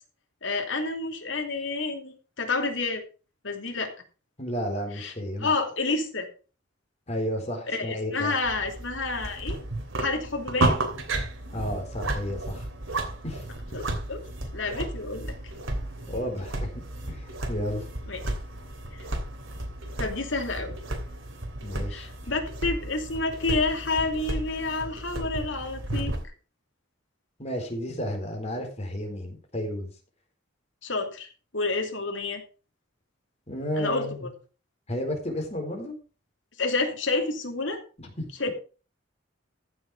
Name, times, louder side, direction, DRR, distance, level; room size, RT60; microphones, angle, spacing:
voice 1, 0.4-3.0 3.4-3.9 5.0-5.1 5.4-6.3 7.7-9.6 10.0-10.8 13.7-14.2 14.5-15.3 18.1-18.2 18.9-19.0 20.0-20.7 21.9-26.1 30.8-32.4 33.8-34.1 36.6-37.8 38.4-38.5, left 3 dB, 70° left, 3 dB, 2.8 m, -29 dB
voice 2, 4.4-5.5 7.1-8.3 11.5-12.7 13.2-13.5 16.1-17.9 21.6-22.1 27.4-29.9 33.5-34.3 34.9-35.9 38.0-38.5, equal, 35° left, 2 dB, 4.2 m, -32 dB
sound 1, 8.4-26.3, right 2 dB, 85° right, 2.9 m, -33 dB
15.0 x 6.4 x 4.9 m, 0.34 s
head